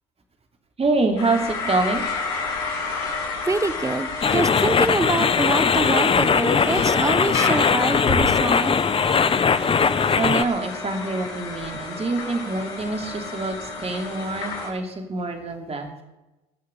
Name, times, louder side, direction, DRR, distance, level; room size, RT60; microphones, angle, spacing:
voice 1, 0.8-2.0 10.2-15.9, right 3 dB, 30° right, 4 dB, 2.7 m, -25 dB
sound 1, 1.2-14.7, left 4 dB, 75° left, 5.1 m, -31 dB
voice 2, 3.5-8.8, right 3 dB, 15° right, 15 dB, 1.0 m, -25 dB
sound 2, 4.2-10.4, left 6 dB, 30° left, 0.7 m, -20 dB
19.5 x 6.5 x 7.0 m, 1.0 s
hypercardioid pair, 70°, 20 cm